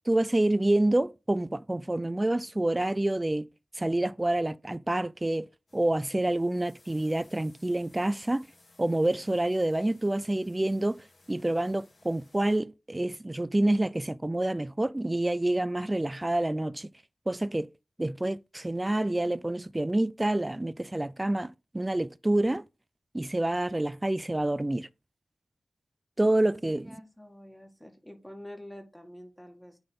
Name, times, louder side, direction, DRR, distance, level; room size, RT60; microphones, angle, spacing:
voice 1, 0.1-3.5 3.8-5.5 5.7-8.4 8.8-11.0 11.3-16.9 17.3-17.7 18.0-22.6 23.1-24.9 26.2-26.9, right 1 dB, 20° right, 0.3 m, -27 dB
sound 1, 5.7-12.6, left 2 dB, 60° left, 3.2 m, -61 dB
voice 2, 26.6-29.8, left 1 dB, 10° left, 1.8 m, -47 dB
9.7 x 4.0 x 3.8 m
wide cardioid pair, 100°, 0 cm